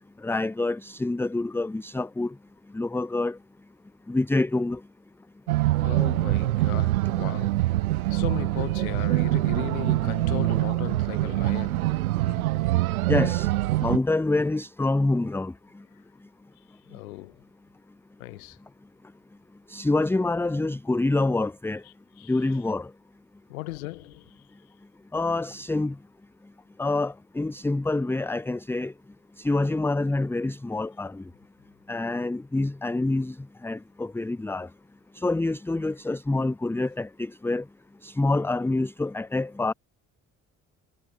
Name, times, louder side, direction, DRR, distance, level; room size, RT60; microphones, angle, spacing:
voice 1, 0.2-2.3 2.7-3.4 4.1-4.8 13.1-13.5 13.8-15.5 19.7-21.8 22.3-22.9 25.1-25.9 26.8-28.9 29.4-31.2 31.9-33.4 33.6-34.7 35.2-37.6 38.0-39.7, left 2 dB, 5° left, 0.6 m, -26 dB
sound 1, 5.5-14.0, right 17 dB, 80° right, 0.6 m, -24 dB
voice 2, 5.6-12.5 16.9-17.4 18.2-18.6 21.8-22.6 23.5-24.5, left 20 dB, 75° left, 1.2 m, -37 dB
figure-of-eight pair, 45°, 42 cm